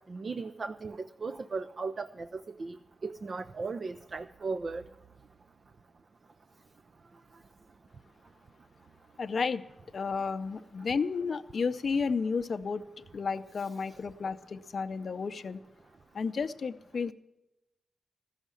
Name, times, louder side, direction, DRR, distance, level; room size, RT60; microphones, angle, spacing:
voice 1, 0.1-4.8, right 4 dB, 45° right, 0.4 m, -37 dB
voice 2, 9.2-9.6 9.9-12.8 13.1-15.6 16.1-17.1, left 5 dB, 55° left, 0.5 m, -32 dB
14.0 x 6.5 x 9.6 m
cardioid pair, 95°, 0 cm